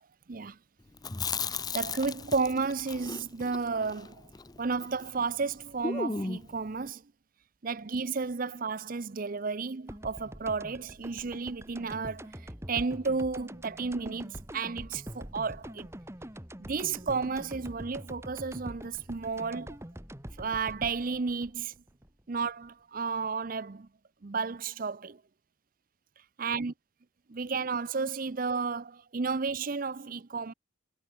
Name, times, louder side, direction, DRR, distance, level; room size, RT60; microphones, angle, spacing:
Chewing mastication, 1.0-5.2 5.4-5.5 5.8-6.6, left 4 dB, 20° left, 0.7 m, -36 dB
voice 1, 1.7-4.2 4.6-7.0 7.6-12.3 12.7-15.9 16.6-19.8 20.4-21.7 22.3-23.9 24.2-25.2 26.4-26.7 27.3-30.5, right 4 dB, 45° right, 0.6 m, -32 dB
sound 1, 9.9-22.7, equal, 15° right, 2.3 m, -44 dB
head